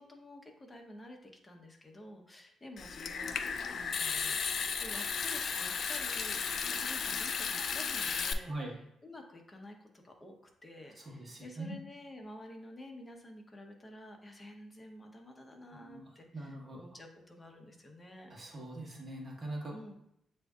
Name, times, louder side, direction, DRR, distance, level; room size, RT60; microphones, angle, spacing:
voice 1, 0.0-4.4 4.8-10.3 10.6-18.3 19.7-19.9, left 1 dB, 20° left, 3 dB, 0.9 m, -51 dB
Water tap faucet / Sink (filling or washing) / Trickle dribble, 2.8-8.3, left 6 dB, 55° left, 0.4 m, -34 dB
voice 2, 11.0-11.7 15.8-16.0 16.3-16.8 18.3-19.9, right 1 dB, 30° right, -2 dB, 1.4 m, -42 dB
7.6 x 2.6 x 2.4 m, 0.78 s
cardioid pair, 90°, 0 cm